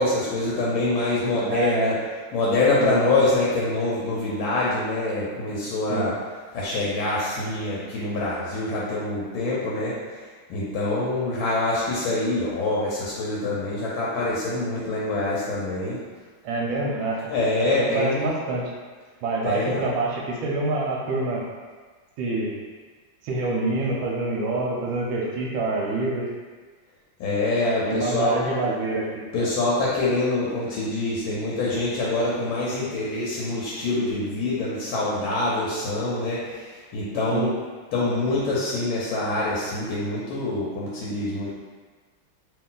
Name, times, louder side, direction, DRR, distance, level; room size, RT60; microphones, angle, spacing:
voice 1, 0.0-2.0 2.3-6.1 6.5-9.9 10.5-16.0 17.3-18.3 19.4-19.8 27.2-28.4 29.3-37.5 37.9-41.5, left 2 dB, 75° left, -6 dB, 1.4 m, -25 dB
voice 2, 1.5-1.9 2.8-3.0 5.9-6.1 16.4-17.3 17.6-18.7 19.2-21.4 22.2-22.6 23.2-26.3 27.9-29.5 37.3-37.5, right 2 dB, 75° right, -2 dB, 1.3 m, -26 dB
3.3 x 2.6 x 3.8 m, 1.4 s
omnidirectional pair, 2.4 m